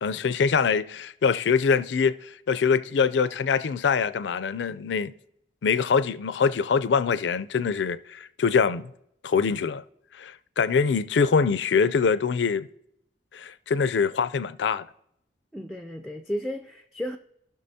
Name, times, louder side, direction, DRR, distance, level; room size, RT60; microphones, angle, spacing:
voice 1, 0.0-5.1 5.6-8.9 9.2-9.8 10.2-12.7 13.3-14.9, left 5 dB, 75° left, 0.4 m, -24 dB
voice 2, 15.5-17.2, equal, ahead, 0.4 m, -33 dB
15.5 x 6.1 x 2.7 m
head